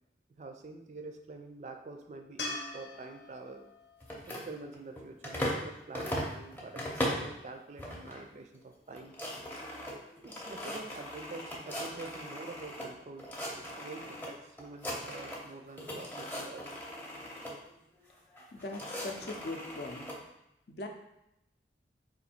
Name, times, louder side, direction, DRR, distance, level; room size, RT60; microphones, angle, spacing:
voice 1, 0.4-3.7 4.3-9.2 10.2-16.8 17.2-17.4, right 3 dB, 40° right, 5 dB, 0.3 m, -47 dB
sound 1, 2.4-5.6 8.9-9.0, left 2 dB, 85° left, 0.9 m, -44 dB
sound 2, 4.0-5.7 5.9-7.3 7.8-8.2 8.5-8.6 8.9-12.9 13.2-14.3 14.6-15.5 15.8-17.5 18.3-20.2, equal, 10° left, 0.6 m, -38 dB
voice 2, 18.5-20.1 20.7-20.9, left 2 dB, 65° left, 3 dB, 0.5 m, -40 dB
3.8 x 2.6 x 4.3 m, 0.85 s
head